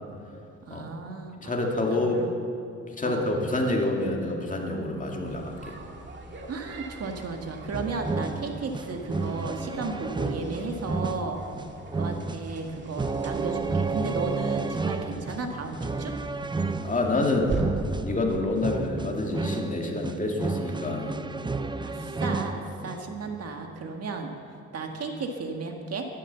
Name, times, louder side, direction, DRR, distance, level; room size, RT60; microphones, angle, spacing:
voice 1, 0.7-1.6 1.9-2.3 3.0-3.3 6.5-11.4 11.9-16.1 21.8-24.3 24.7-26.1, right 3 dB, 55° right, 3 dB, 1.8 m, -34 dB
voice 2, 1.4-2.2 3.0-5.8 16.8-17.6 18.0-21.2, left 2 dB, 25° left, 1 dB, 2.3 m, -27 dB
sound 1, 5.2-17.6, right 4 dB, 40° right, 2.1 m, -42 dB
sound 2, 7.7-23.2, right 3 dB, 15° right, 0.6 m, -32 dB
13.5 x 11.5 x 6.9 m, 2.6 s
cardioid pair, 90°, 30 cm